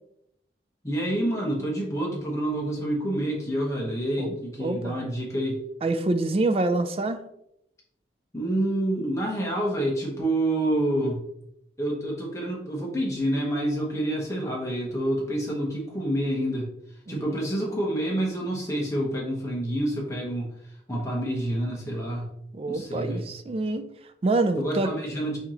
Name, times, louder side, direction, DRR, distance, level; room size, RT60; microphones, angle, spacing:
voice 1, 0.8-5.6 8.3-11.2 11.8-16.7 17.1-20.5 20.9-22.3 22.7-23.2 24.6-25.4, right 1 dB, 15° left, -3 dB, 0.9 m, -28 dB
voice 2, 4.2-5.0 5.8-7.3 17.1-17.3 22.5-24.9, right 2 dB, 30° right, 9 dB, 0.3 m, -27 dB
4.6 x 2.8 x 3.7 m, 0.78 s
head